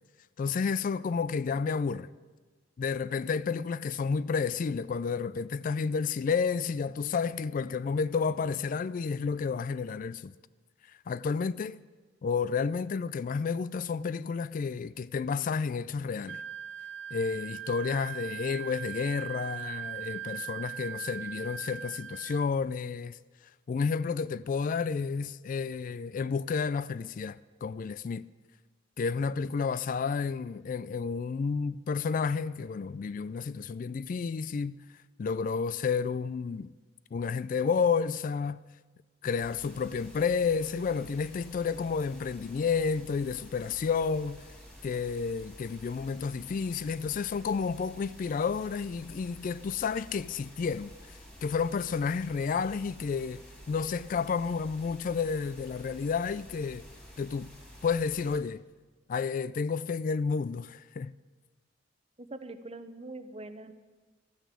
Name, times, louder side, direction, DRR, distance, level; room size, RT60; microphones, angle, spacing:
voice 1, 0.4-2.1 2.8-10.3 11.1-11.8 12.2-16.4 17.1-23.2 23.7-28.3 29.0-34.8 35.2-36.7 37.1-38.6 39.2-44.4 44.8-50.9 51.4-56.8 57.2-57.5 57.8-58.6 59.1-61.1, left 5 dB, 45° left, 0.3 m, -31 dB
Wind instrument woodwind instrument, 16.3-22.5, right 10 dB, 75° right, 0.6 m, -40 dB
sound 1, 39.4-58.4, equal, 5° left, 3.3 m, -51 dB
voice 2, 62.2-63.7, right 2 dB, 35° right, 0.8 m, -43 dB
13.0 x 9.4 x 8.2 m
head